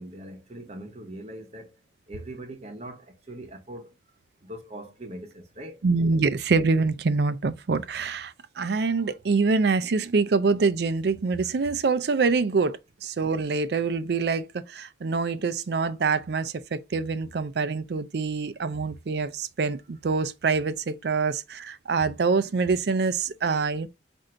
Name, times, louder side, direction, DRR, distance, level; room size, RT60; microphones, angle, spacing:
voice 1, 0.0-1.8 2.1-3.9 4.4-5.8, right 1 dB, 35° right, 0.9 m, -41 dB
voice 2, 5.8-23.9, right 4 dB, 55° right, 0.4 m, -25 dB
4.4 x 2.6 x 3.7 m
head